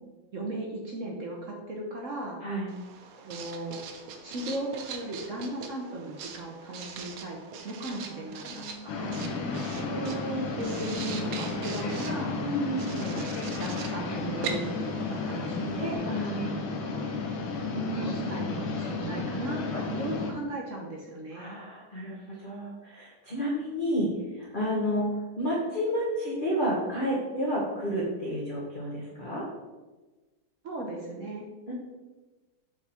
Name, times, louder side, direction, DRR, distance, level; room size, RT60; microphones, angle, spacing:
voice 1, 0.3-2.4 3.2-3.8 4.2-7.4 7.6-9.1 10.5-12.4 12.9-16.1 18.0-21.6 30.6-31.4, right 2 dB, 55° right, -1 dB, 0.9 m, -37 dB
Writing, 2.7-16.0, right 6 dB, 85° right, 1.6 m, -42 dB
voice 2, 7.9-10.5 12.4-13.0 16.0-16.7 17.5-18.5 21.3-29.5 31.7-31.8, equal, 35° left, -4 dB, 0.9 m, -32 dB
sound 1, 8.9-20.3, left 4 dB, 75° left, 1.7 m, -33 dB
8.1 x 3.9 x 4.3 m, 1.2 s
omnidirectional pair, 2.3 m